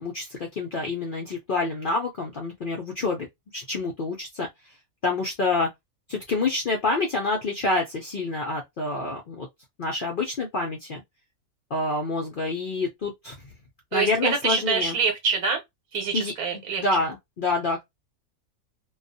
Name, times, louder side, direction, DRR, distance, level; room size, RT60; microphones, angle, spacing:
voice 1, 0.0-3.3 3.5-4.5 5.0-5.7 6.1-9.5 9.8-11.0 11.7-13.3 13.9-15.0 16.1-16.3 16.8-17.8, left 3 dB, 60° left, 0.5 m, -27 dB
voice 2, 13.9-15.6 15.9-16.8, right 5 dB, 90° right, 1.2 m, -25 dB
2.3 x 2.3 x 2.6 m
omnidirectional pair, 1.5 m